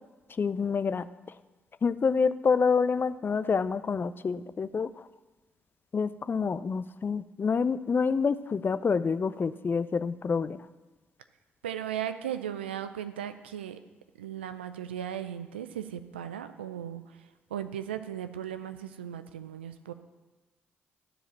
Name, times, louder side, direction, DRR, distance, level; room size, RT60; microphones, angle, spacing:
voice 1, 0.4-1.1 1.8-4.9 5.9-10.6, left 5 dB, 35° left, 14 dB, 0.5 m, -27 dB
voice 2, 11.6-13.8 14.2-17.0 17.5-19.9, right 10 dB, 85° right, 10 dB, 0.4 m, -37 dB
13.0 x 5.0 x 7.2 m, 1.2 s
figure-of-eight pair, 40°, 6 cm